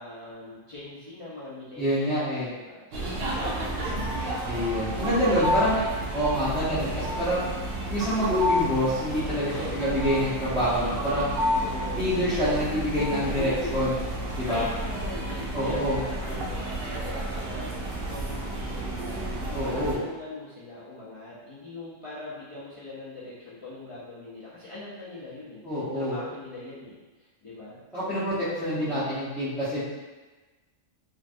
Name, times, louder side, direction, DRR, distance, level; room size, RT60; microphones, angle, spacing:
voice 1, 0.0-3.8 4.2-4.3 9.5-9.8 11.6-12.1 13.2-13.8 14.5-27.8 28.7-29.0, left 2 dB, 60° left, -10 dB, 0.3 m, -41 dB
voice 2, 1.8-2.5 4.4-5.8 6.1-7.4 7.9-11.3 11.9-14.0 14.4-14.6 15.5-16.0 19.5-20.0 25.6-26.2 27.9-29.8, equal, ahead, -16 dB, 0.7 m, -26 dB
sound 1, 2.9-20.0, right 1 dB, 60° right, 0.7 m, -31 dB
3.1 x 2.6 x 2.5 m, 1.2 s
omnidirectional pair, 1.3 m